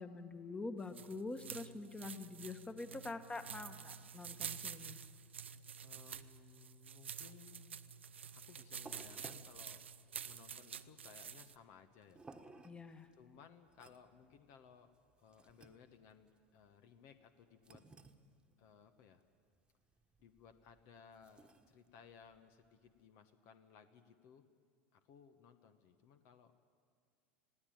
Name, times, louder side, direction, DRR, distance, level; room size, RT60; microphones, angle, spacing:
voice 1, 0.0-5.0 12.6-13.1, left 3 dB, 15° left, 9 dB, 1.5 m, -46 dB
sound 1, 0.8-11.5, right 7 dB, 90° right, 0.6 m, -49 dB
voice 2, 5.8-7.8 8.3-9.9 10.2-12.2 13.1-14.9 15.2-17.9 18.6-19.2 20.2-24.5 24.9-26.5, left 7 dB, 55° left, 8 dB, 1.2 m, -61 dB
sound 2, 8.1-23.1, right 3 dB, 15° right, 1.4 m, -62 dB
20.0 x 16.0 x 9.1 m, 2.1 s
hypercardioid pair, 90°, 6 cm